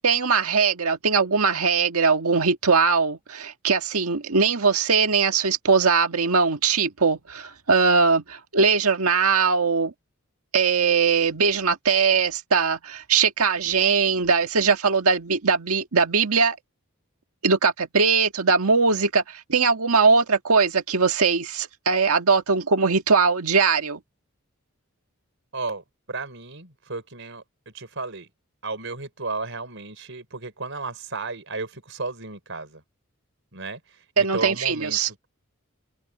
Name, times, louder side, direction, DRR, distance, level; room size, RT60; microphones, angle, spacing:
voice 1, 0.0-9.9 10.5-16.6 17.4-24.0 34.2-35.1, right 5 dB, 90° right, 1.7 m, -21 dB
voice 2, 25.5-28.3 28.6-32.8 33.5-35.3, right 3 dB, 60° right, 5.3 m, -34 dB
head